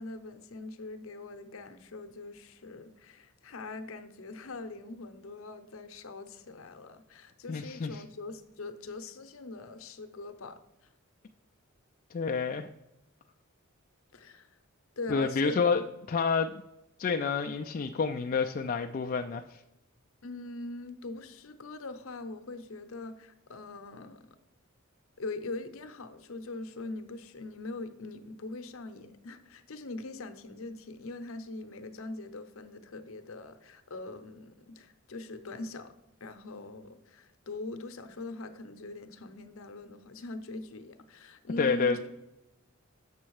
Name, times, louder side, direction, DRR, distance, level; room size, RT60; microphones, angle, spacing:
voice 1, 0.0-10.9 14.1-14.5 15.0-15.6 20.2-24.2 25.2-35.9 36.2-42.0, left 2 dB, 70° left, 8 dB, 0.7 m, -42 dB
voice 2, 7.5-8.0 12.1-12.7 15.1-15.8 16.1-16.5 17.0-19.6 41.6-42.1, left 5 dB, 40° left, 3 dB, 0.3 m, -29 dB
7.4 x 6.3 x 4.7 m, 0.93 s
head